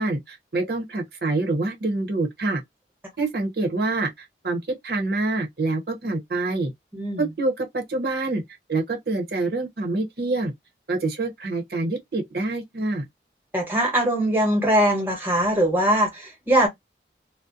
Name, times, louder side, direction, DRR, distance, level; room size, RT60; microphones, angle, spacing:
voice 1, 0.0-2.6 3.2-6.7 7.2-8.4 8.7-10.5 10.9-13.1, right 2 dB, 60° right, 0.8 m, -26 dB
voice 2, 6.9-7.2 13.5-16.7, right 1 dB, 10° right, 0.9 m, -21 dB
2.4 x 2.1 x 2.5 m
head